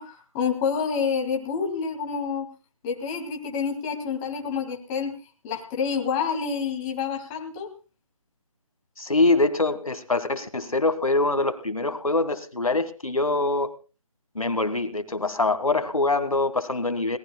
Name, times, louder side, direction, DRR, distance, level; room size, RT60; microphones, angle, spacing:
voice 1, 0.0-2.5 2.8-5.1 5.4-7.7, left 6 dB, 15° left, 3 dB, 2.0 m, -28 dB
voice 2, 9.0-13.7 14.3-17.2, left 2 dB, 85° left, 11 dB, 1.7 m, -24 dB
22.0 x 18.5 x 2.2 m, 0.33 s
figure-of-eight pair, 155°, 17 cm